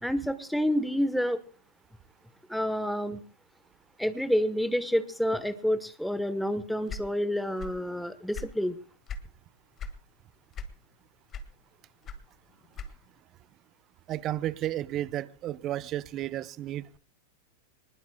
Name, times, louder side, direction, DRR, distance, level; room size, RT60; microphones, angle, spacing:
voice 1, 0.0-1.4 2.5-3.2 4.0-8.8, equal, ahead, 12 dB, 1.1 m, -28 dB
sound 1, 6.9-7.9 8.2-9.3 9.8-10.0 10.5-11.0 11.3-13.2, left 4 dB, 30° left, 1.8 m, -39 dB
voice 2, 14.1-17.0, right 13 dB, 35° right, 17 dB, 0.7 m, -33 dB
24.5 x 20.5 x 2.3 m, 0.37 s
figure-of-eight pair, 95°, 0 cm